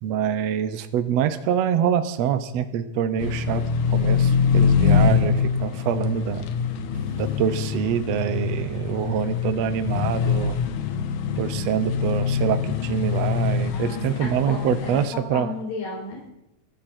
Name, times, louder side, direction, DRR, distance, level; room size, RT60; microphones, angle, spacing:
voice 1, 0.0-3.6 3.9-6.5 7.2-10.6 11.4-15.5, right 9 dB, 75° right, 10 dB, 1.5 m, -25 dB
sound 1, 3.2-15.1, left 6 dB, 70° left, 2.2 m, -24 dB
voice 2, 13.7-16.3, left 3 dB, 90° left, -1 dB, 6.7 m, -34 dB
23.5 x 13.5 x 4.4 m, 0.88 s
omnidirectional pair, 4.5 m